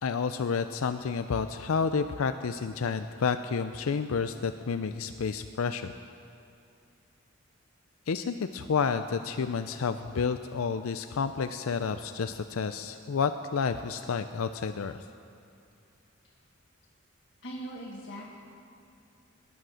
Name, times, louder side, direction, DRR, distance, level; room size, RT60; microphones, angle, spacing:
voice 1, 0.0-5.9 8.1-15.0, left 5 dB, 85° left, 9 dB, 0.5 m, -30 dB
voice 2, 17.4-18.4, right 1 dB, 60° left, -3 dB, 1.8 m, -40 dB
19.5 x 9.3 x 6.4 m, 2.6 s
head